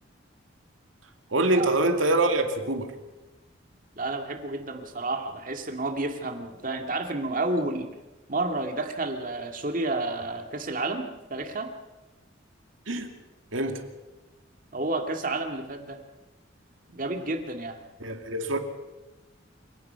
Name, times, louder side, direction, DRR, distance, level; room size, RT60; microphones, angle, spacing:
voice 1, 1.3-2.9 12.9-13.1 13.5-13.9 18.0-18.6, right 2 dB, 85° right, 2.3 m, -25 dB
voice 2, 4.0-7.9 8.3-11.8 14.7-16.0 16.9-17.8, right 2 dB, 45° right, 2.2 m, -30 dB
28.0 x 17.0 x 5.8 m
head